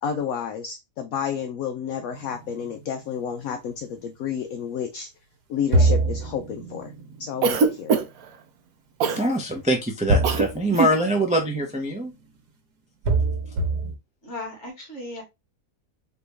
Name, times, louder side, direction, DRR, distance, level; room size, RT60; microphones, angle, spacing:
voice 1, 0.0-5.1 5.5-6.9 7.2-7.9, left 7 dB, 70° left, 6 dB, 1.0 m, -30 dB
sound 1, 2.1-4.2 5.7-8.2 10.1-12.4 13.0-13.9, right 2 dB, 90° right, 1.5 m, -26 dB
Cough, 7.4-8.3 9.0-9.3 10.2-10.5 10.7-11.0, right 5 dB, 70° right, 1.1 m, -21 dB
voice 2, 9.2-12.1, right 1 dB, 10° right, 2 dB, 0.4 m, -23 dB
voice 3, 14.2-15.2, left 2 dB, 45° left, 0 dB, 2.3 m, -36 dB
4.1 x 3.2 x 3.4 m, 0.23 s
omnidirectional pair, 1.7 m